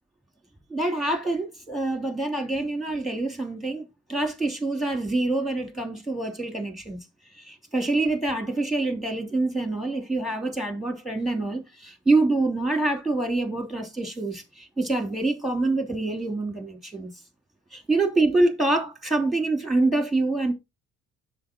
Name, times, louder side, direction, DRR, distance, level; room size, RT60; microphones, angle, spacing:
voice 1, 0.7-7.0 7.3-17.1 17.7-20.5, right 2 dB, ahead, 3.0 m, -26 dB
7.6 x 6.9 x 3.7 m
figure-of-eight pair, 50°, 37 cm